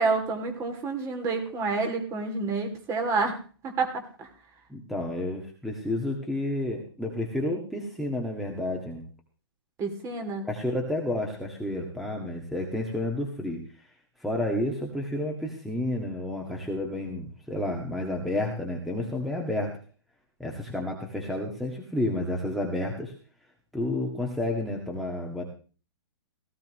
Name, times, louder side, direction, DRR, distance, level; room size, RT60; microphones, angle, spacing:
voice 1, 0.0-3.4 3.6-4.3 9.8-10.5, right 4 dB, 20° right, 4 dB, 2.8 m, -28 dB
voice 2, 4.7-9.0 10.4-13.6 14.2-19.7 20.4-23.1 23.7-25.4, left 1 dB, ahead, 1 dB, 1.9 m, -30 dB
17.5 x 15.0 x 3.2 m, 0.38 s
hypercardioid pair, 135°, 14 cm